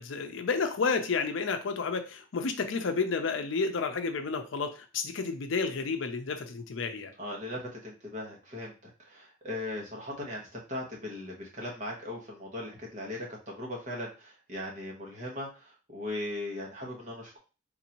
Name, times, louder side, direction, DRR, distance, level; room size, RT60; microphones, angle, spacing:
voice 1, 0.0-7.1, left 4 dB, 75° left, 7 dB, 0.5 m, -31 dB
voice 2, 7.2-13.2 13.5-17.4, left 1 dB, 40° right, -1 dB, 1.1 m, -38 dB
3.8 x 2.6 x 2.9 m, 0.32 s
head